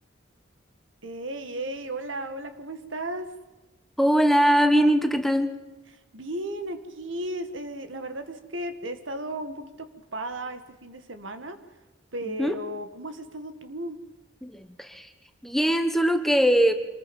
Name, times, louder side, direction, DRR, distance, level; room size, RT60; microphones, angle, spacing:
voice 1, 1.0-3.2 6.1-11.6 12.1-14.0, right 1 dB, 85° right, 8 dB, 1.9 m, -35 dB
voice 2, 4.0-5.5 12.2-12.6 14.4-15.1 15.4-16.7, equal, ahead, 7 dB, 1.1 m, -21 dB
26.0 x 20.0 x 5.5 m, 1.1 s
head